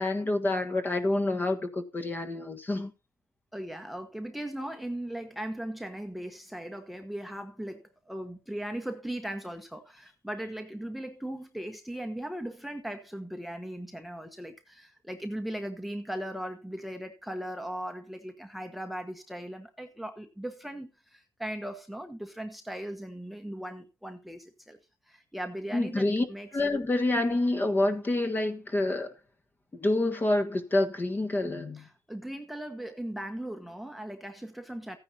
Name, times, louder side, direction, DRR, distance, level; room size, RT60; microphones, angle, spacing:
voice 1, 0.0-2.9 25.7-26.2 26.5-29.1 29.7-31.8, left 2 dB, 20° left, 1.4 m, -27 dB
voice 2, 3.5-24.8 25.1-26.5 31.7-35.0, right 1 dB, ahead, 1.1 m, -38 dB
14.5 x 9.7 x 2.8 m
cardioid pair, 110°, 9 cm